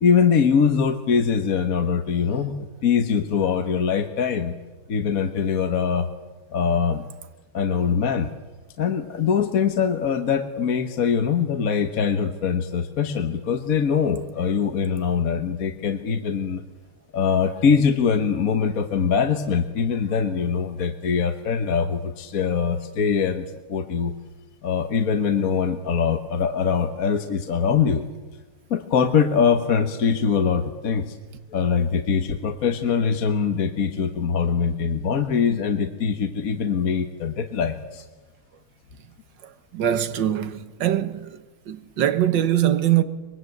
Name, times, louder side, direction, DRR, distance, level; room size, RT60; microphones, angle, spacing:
voice 1, 0.0-4.5 4.9-6.1 6.5-7.1 7.5-8.3 8.8-16.6 17.1-24.1 24.6-28.0 28.7-31.2 31.5-38.0, left 6 dB, 45° left, 1.4 m, -22 dB
voice 2, 39.7-41.4 41.7-43.0, right 11 dB, 60° right, 1.9 m, -22 dB
24.5 x 22.0 x 8.0 m
omnidirectional pair, 2.3 m